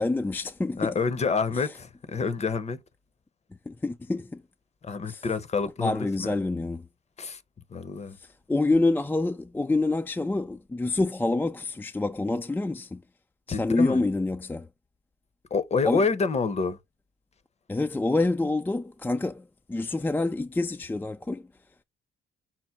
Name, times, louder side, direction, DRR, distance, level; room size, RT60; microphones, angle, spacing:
voice 1, 0.0-1.0 3.7-4.4 5.1-5.3 5.8-6.9 8.2-13.0 13.5-14.7 15.9-16.0 17.7-21.4, left 2 dB, 10° left, 0.3 m, -27 dB
voice 2, 0.8-2.8 4.8-6.4 7.2-7.4 7.7-8.2 13.5-14.0 15.5-16.8, left 4 dB, 30° left, 0.7 m, -28 dB
5.8 x 2.1 x 4.4 m
supercardioid pair, 80°, 21 cm